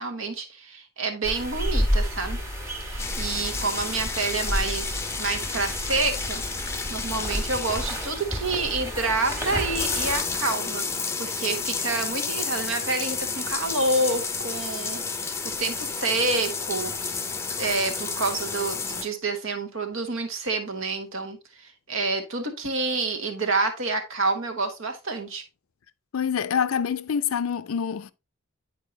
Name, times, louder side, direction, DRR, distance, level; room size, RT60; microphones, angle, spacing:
voice 1, 0.0-2.4 2.9-6.4 6.9-10.8 11.2-16.9 17.6-25.4, right 3 dB, 70° right, 1.3 m, -28 dB
sound 1, 1.2-10.2, equal, 10° right, 1.5 m, -31 dB
sound 2, 3.0-19.1, left 4 dB, 15° left, 0.6 m, -31 dB
voice 2, 26.1-28.1, left 7 dB, 85° left, 0.5 m, -26 dB
10.0 x 4.6 x 2.7 m
head